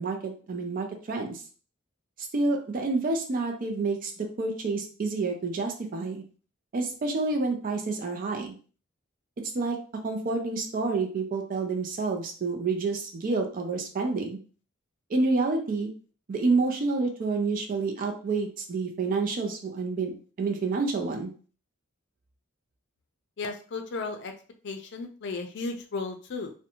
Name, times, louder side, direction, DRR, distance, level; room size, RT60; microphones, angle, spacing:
voice 1, 0.0-1.4 2.3-6.2 6.7-8.5 9.5-9.8 10.0-14.4 15.1-15.9 16.3-20.1 20.4-21.3, right 3 dB, 45° right, 3 dB, 0.4 m, -28 dB
voice 2, 23.4-24.3 24.6-26.5, left 3 dB, 60° left, 6 dB, 0.5 m, -34 dB
2.6 x 2.1 x 2.8 m, 0.40 s
head